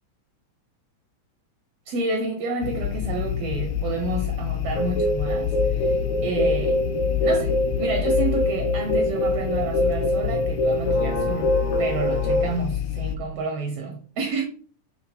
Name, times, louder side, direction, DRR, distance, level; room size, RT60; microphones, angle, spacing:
voice 1, 1.9-6.8 7.2-11.5 11.8-14.4, right 3 dB, 70° right, 1.5 m, -30 dB
sound 1, 2.6-13.2, left 11 dB, 80° left, 1.8 m, -28 dB
sound 2, 4.8-12.5, left 1 dB, 50° left, 1.8 m, -24 dB
8.2 x 2.9 x 4.3 m
omnidirectional pair, 3.6 m